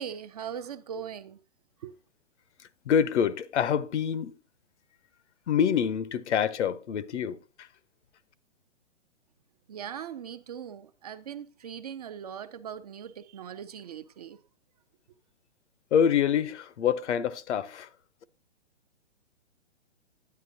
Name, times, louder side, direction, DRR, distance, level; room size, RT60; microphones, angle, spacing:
voice 1, 0.0-1.4 1.8-1.9 9.7-14.4, right 8 dB, 35° right, 0.4 m, -40 dB
voice 2, 2.6-4.4 5.5-7.7 15.9-17.9, left 8 dB, 70° left, 0.7 m, -26 dB
9.6 x 9.4 x 2.7 m
hypercardioid pair, 145°, 35 cm